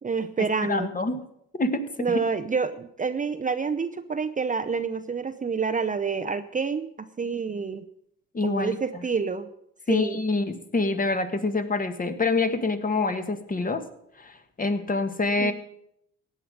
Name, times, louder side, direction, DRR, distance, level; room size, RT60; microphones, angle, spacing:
voice 1, 0.0-0.9 2.0-7.8 8.4-9.5 9.9-10.2 15.4-15.5, right 5 dB, 25° right, 9 dB, 0.7 m, -28 dB
voice 2, 0.6-1.2 1.5-2.2 8.3-8.8 9.9-13.8 14.2-15.5, left 3 dB, 30° left, 8 dB, 1.6 m, -26 dB
16.0 x 9.5 x 5.2 m, 0.75 s
cardioid pair, 90°, 30 cm